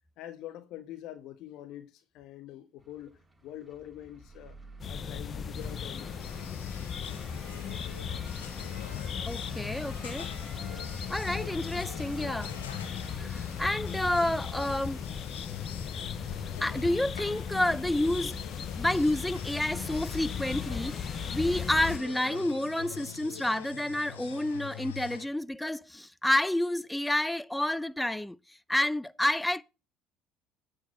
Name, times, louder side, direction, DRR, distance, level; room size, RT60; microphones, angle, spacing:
voice 1, 0.2-4.6 4.9-6.5, left 12 dB, 60° left, 1.4 m, -45 dB
sound 1, 2.8-22.4, right 1 dB, 10° right, 6.1 m, -50 dB
sound 2, 4.8-22.0, left 7 dB, 40° left, 0.7 m, -37 dB
sound 3, 5.6-25.3, left 9 dB, 85° left, 1.2 m, -45 dB
voice 2, 9.3-10.3 11.1-12.6 13.2-15.0 16.6-18.4 18.8-28.4 28.7-29.6, left 1 dB, 5° left, 0.7 m, -29 dB
9.4 x 4.7 x 7.7 m
hypercardioid pair, 65°, 0 cm